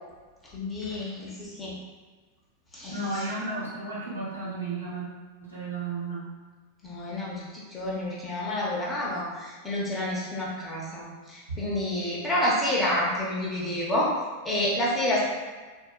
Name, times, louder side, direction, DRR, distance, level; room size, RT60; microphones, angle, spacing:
voice 1, 0.5-1.7 2.7-3.2 6.8-14.1 14.4-15.3, left 1 dB, 15° left, -6 dB, 0.8 m, -29 dB
voice 2, 2.9-5.1 5.4-6.2, right 3 dB, 85° right, -8 dB, 1.0 m, -33 dB
3.6 x 2.1 x 2.3 m, 1.4 s
figure-of-eight pair, 90°, 0 cm